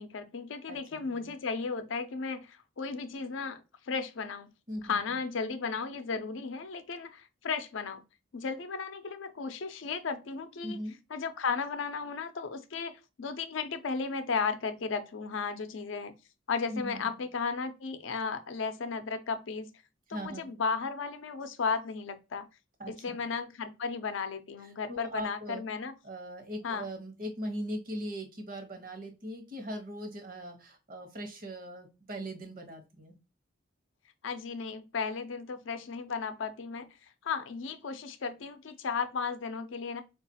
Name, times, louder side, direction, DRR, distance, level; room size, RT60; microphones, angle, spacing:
voice 1, 0.0-4.5 4.8-8.0 8.3-10.8 11.1-16.1 16.5-19.7 20.1-22.5 23.0-25.9 26.6-26.9 34.2-36.9 37.2-40.0, left 5 dB, 75° left, 0.5 m, -35 dB
voice 2, 0.7-1.3 4.7-5.2 10.6-11.0 16.7-17.2 20.1-20.5 22.8-23.2 24.6-25.6 26.0-33.1, equal, 45° right, 0.9 m, -40 dB
4.6 x 2.4 x 2.7 m
head